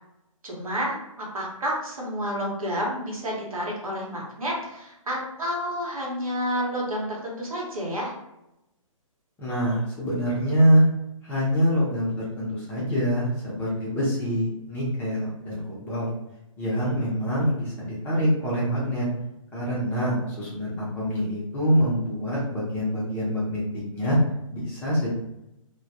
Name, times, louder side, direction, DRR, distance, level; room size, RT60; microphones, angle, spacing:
voice 1, 0.4-8.1, equal, 90° right, -3 dB, 1.0 m, -30 dB
voice 2, 9.4-10.8 11.2-16.1 16.6-19.1 19.5-24.2 24.5-25.1, equal, 10° left, -6 dB, 0.5 m, -25 dB
2.2 x 2.1 x 2.7 m, 0.87 s
hypercardioid pair, 145°, 18 cm